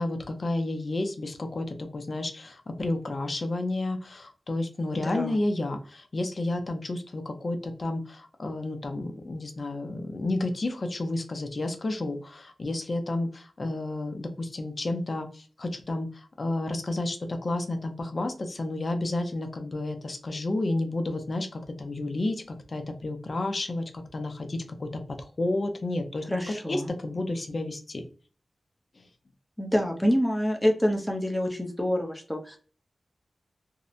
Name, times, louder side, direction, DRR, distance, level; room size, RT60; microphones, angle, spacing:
voice 1, 0.0-22.4 22.7-28.0 29.0-29.1, left 2 dB, 45° left, 5 dB, 0.5 m, -31 dB
voice 2, 5.0-5.4 26.3-26.9 29.6-32.6, equal, 5° left, 2 dB, 0.6 m, -26 dB
2.7 x 2.1 x 2.4 m, 0.39 s
wide cardioid pair, 125°, 0 cm